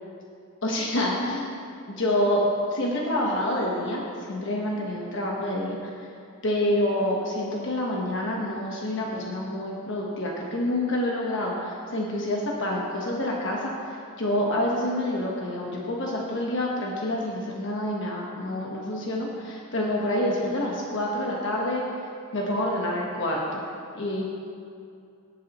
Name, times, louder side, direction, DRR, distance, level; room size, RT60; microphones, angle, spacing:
voice 1, 0.6-2.4 2.7-6.1 6.4-21.8 22.3-23.6 23.9-24.2, left 1 dB, 55° left, -3 dB, 1.2 m, -27 dB
18.0 x 8.3 x 3.0 m, 2.5 s
head